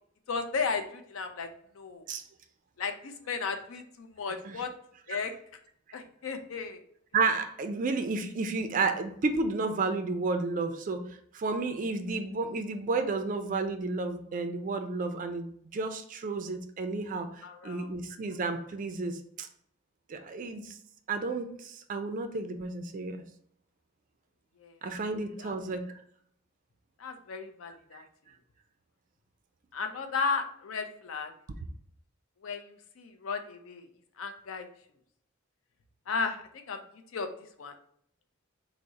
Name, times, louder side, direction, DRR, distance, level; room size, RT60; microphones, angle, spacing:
voice 1, 0.3-1.5 1.8-2.0 2.8-4.7 5.1-5.3 5.9-6.8 17.4-17.9 24.6-24.7 25.4-25.6 27.0-28.0 29.7-31.3 32.4-32.6 33.0-33.9 34.2-34.7 36.1-36.8 37.1-37.3 37.6-37.7, left 5 dB, 75° left, 0.5 m, -34 dB
voice 2, 7.1-11.1 11.3-17.3 17.6-19.5 20.1-20.8 21.1-23.2 24.8-25.9, right 3 dB, 40° right, 0.3 m, -31 dB
3.5 x 2.0 x 3.9 m
head